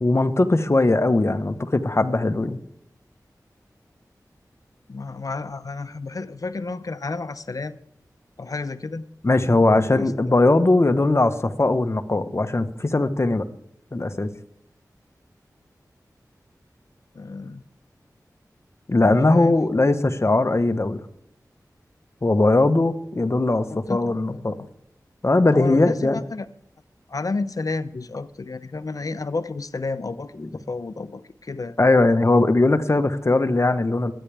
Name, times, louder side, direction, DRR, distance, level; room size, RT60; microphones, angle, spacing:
voice 1, 0.0-2.6 9.2-13.4 13.9-14.3 18.9-21.0 22.2-24.6 25.2-26.2 30.4-30.5 31.8-34.1, left 2 dB, 40° left, 9 dB, 1.2 m, -19 dB
voice 2, 4.9-7.8 8.4-9.0 9.7-10.1 17.1-17.6 19.0-19.6 23.7-24.7 25.5-26.5 27.1-31.8, left 3 dB, 60° left, 13 dB, 0.8 m, -31 dB
23.0 x 10.0 x 3.5 m, 0.74 s
cardioid pair, 45°, 7 cm